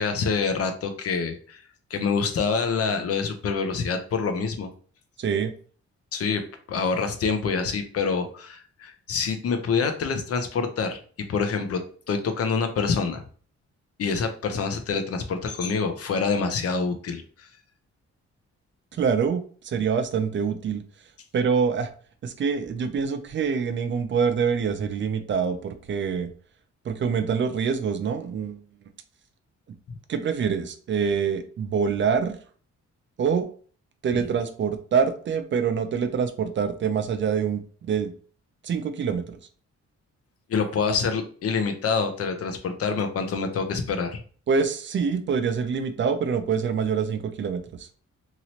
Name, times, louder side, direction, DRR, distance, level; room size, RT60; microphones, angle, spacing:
voice 1, 0.0-1.6 1.9-4.7 6.1-11.0 11.3-11.8 12.1-13.2 14.0-17.5 40.5-44.2, left 5 dB, 55° left, 7 dB, 0.6 m, -26 dB
voice 2, 5.2-5.5 18.9-20.8 21.3-21.9 22.2-26.3 26.9-28.6 30.1-32.4 33.2-33.4 34.0-38.1 38.6-39.4 44.5-47.9, right 6 dB, 40° right, 9 dB, 0.4 m, -25 dB
3.0 x 2.9 x 2.8 m, 0.43 s
wide cardioid pair, 160°, 29 cm